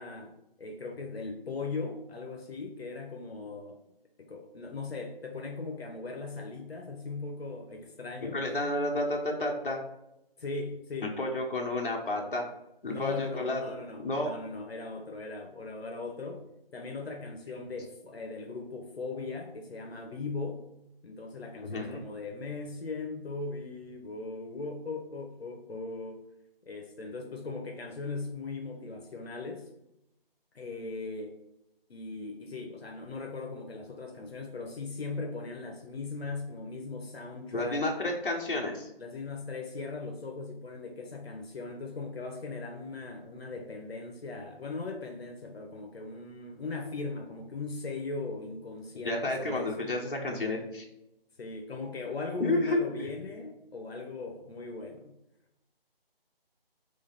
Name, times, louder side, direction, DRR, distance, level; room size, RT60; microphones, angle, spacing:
voice 1, 0.0-3.8 4.2-8.4 10.4-11.1 12.9-16.4 16.7-20.7 21.0-26.2 26.6-29.7 30.5-31.4 31.9-37.8 39.0-49.9 51.4-55.1, left 3 dB, 90° left, 3 dB, 0.8 m, -39 dB
voice 2, 8.3-9.8 11.2-12.4 12.8-13.7 14.0-14.3 21.6-22.0 37.5-38.9 49.0-50.8 52.4-52.8, left 2 dB, 60° left, 1 dB, 1.0 m, -31 dB
3.8 x 2.9 x 4.2 m, 0.86 s
figure-of-eight pair, 180°, 30 cm